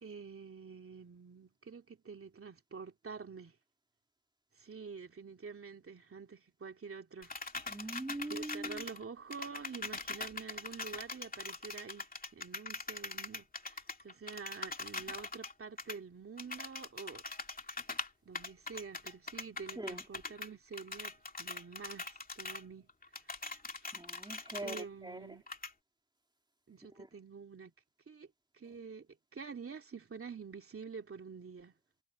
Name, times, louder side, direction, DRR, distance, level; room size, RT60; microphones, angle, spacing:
voice 1, 0.0-3.5 4.6-7.9 8.3-12.1 12.3-17.2 18.2-22.9 24.6-25.4 26.7-27.7 28.1-28.3 28.5-31.7, right 5 dB, 30° right, 2.9 m, -48 dB
sound 1, 7.2-9.0 9.3-15.5 15.8-16.0 16.4-18.1 18.3-20.5 20.7-22.6 22.9-24.8 25.5-25.7, left 3 dB, 20° left, 2.5 m, -42 dB
voice 2, 7.7-8.8 19.7-20.0 23.9-25.4 27.0-27.1, right 2 dB, 10° right, 3.3 m, -43 dB
wide cardioid pair, 165°, 46 cm